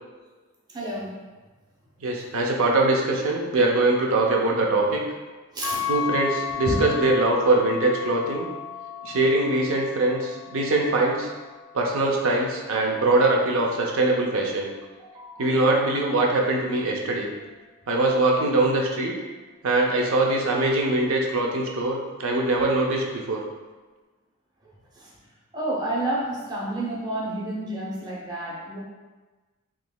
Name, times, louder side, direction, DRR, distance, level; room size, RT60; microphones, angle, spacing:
voice 1, 0.7-1.2 5.5-5.9 6.6-6.8 15.0-15.9 24.6-25.1 25.5-28.8, right 1 dB, 20° right, -5 dB, 0.7 m, -30 dB
voice 2, 2.0-5.0 5.9-8.5 9.0-11.3 11.7-14.7 15.4-17.3 17.9-19.1 19.6-23.4, right 2 dB, 70° right, 0 dB, 0.6 m, -22 dB
sound 1, 5.6-13.9, left 9 dB, 80° left, 0.8 m, -35 dB
3.7 x 3.0 x 2.2 m, 1.3 s
head